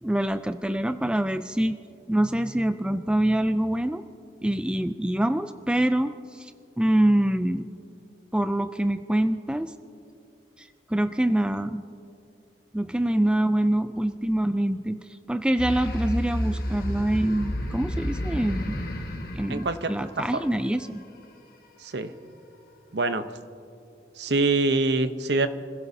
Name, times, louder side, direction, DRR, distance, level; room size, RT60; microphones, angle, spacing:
voice 1, 0.0-1.8 2.1-4.0 4.4-6.5 6.8-7.7 8.3-9.7 10.6-11.8 12.7-15.0 15.3-18.8 19.3-21.0, right 1 dB, 5° right, 9 dB, 0.3 m, -25 dB
sound 1, 15.6-20.5, equal, 55° left, 1.5 m, -31 dB
voice 2, 19.5-20.4 21.8-22.1 22.9-23.2 24.2-25.5, right 3 dB, 70° right, 10 dB, 0.8 m, -25 dB
29.0 x 16.5 x 2.8 m, 2.6 s
head